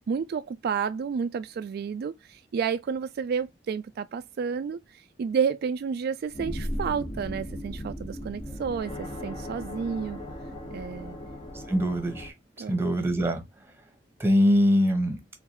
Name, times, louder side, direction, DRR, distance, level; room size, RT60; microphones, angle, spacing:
voice 1, 0.1-10.2 10.7-11.2 12.6-12.8, right 6 dB, 55° right, 0.3 m, -31 dB
sound 1, 6.3-12.3, equal, 30° left, 0.9 m, -37 dB
voice 2, 11.5-12.3 12.7-13.5 14.2-15.2, equal, 15° right, 1.0 m, -23 dB
3.8 x 3.5 x 2.9 m
head